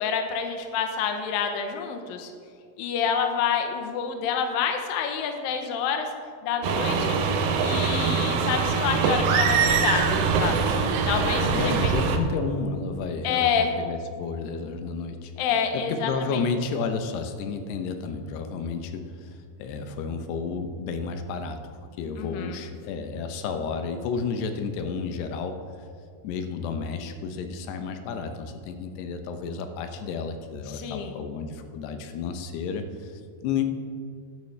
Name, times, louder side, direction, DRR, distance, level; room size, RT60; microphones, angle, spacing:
voice 1, 0.0-2.3 2.8-6.1 6.4-7.2 7.6-10.6 11.1-12.0 13.2-13.7 15.4-16.4 22.2-22.6 30.7-31.1, left 7 dB, 75° left, 5 dB, 2.4 m, -28 dB
sound 1, 6.6-12.2, right 5 dB, 85° right, 1.7 m, -23 dB
voice 2, 11.4-15.3 15.7-21.6 22.0-25.6 26.2-33.7, left 5 dB, 90° left, 7 dB, 2.9 m, -31 dB
13.5 x 11.0 x 3.2 m, 2.1 s
omnidirectional pair, 4.6 m